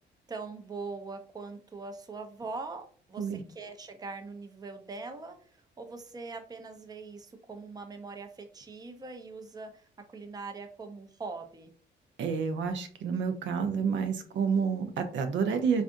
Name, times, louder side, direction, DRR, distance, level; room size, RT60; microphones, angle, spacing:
voice 1, 0.3-11.7, right 3 dB, 20° right, 6 dB, 0.5 m, -42 dB
voice 2, 12.2-15.8, right 6 dB, 70° right, 7 dB, 0.5 m, -29 dB
3.6 x 2.5 x 2.5 m, 0.42 s
cardioid pair, 90°, 20 cm